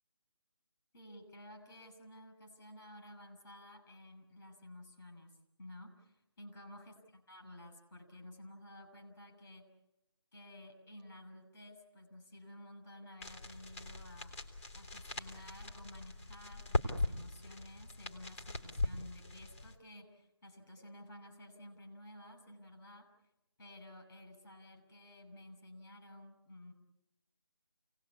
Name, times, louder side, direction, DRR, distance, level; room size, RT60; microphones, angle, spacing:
voice 1, 0.9-9.7 10.3-14.4 14.7-23.1 23.6-26.7, left 1 dB, 45° left, 6 dB, 6.2 m, -53 dB
sound 1, 13.2-19.7, left 2 dB, 30° left, 2.8 m, -40 dB
29.0 x 19.0 x 8.5 m, 0.88 s
figure-of-eight pair, 175°, 15 cm